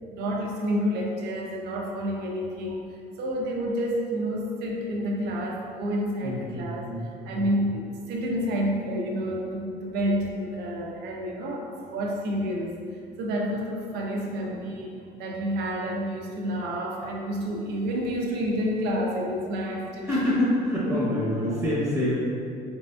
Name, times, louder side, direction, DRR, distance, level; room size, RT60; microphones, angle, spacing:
voice 1, 0.0-2.8 3.2-6.9 7.3-12.7 13.2-20.1 20.9-21.0, equal, 75° right, -1 dB, 0.5 m, -29 dB
voice 2, 6.2-7.5 20.0-22.4, left 1 dB, 5° right, -8 dB, 0.8 m, -26 dB
4.2 x 2.6 x 2.2 m, 2.4 s
cardioid pair, 110°, 17 cm